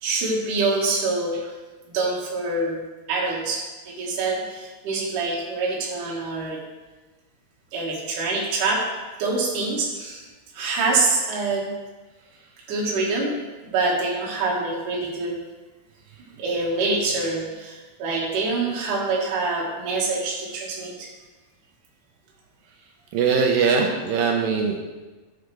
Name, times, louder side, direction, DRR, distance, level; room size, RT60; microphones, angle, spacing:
voice 1, 0.0-1.4 1.9-2.8 3.1-6.6 7.7-8.9 9.2-10.2 10.5-11.7 12.7-13.4 13.6-15.4 16.3-21.1, right 3 dB, 60° right, -4 dB, 3.0 m, -25 dB
voice 2, 23.1-24.8, right 5 dB, 75° right, 2 dB, 2.2 m, -21 dB
11.5 x 8.0 x 3.4 m, 1.2 s
omnidirectional pair, 4.5 m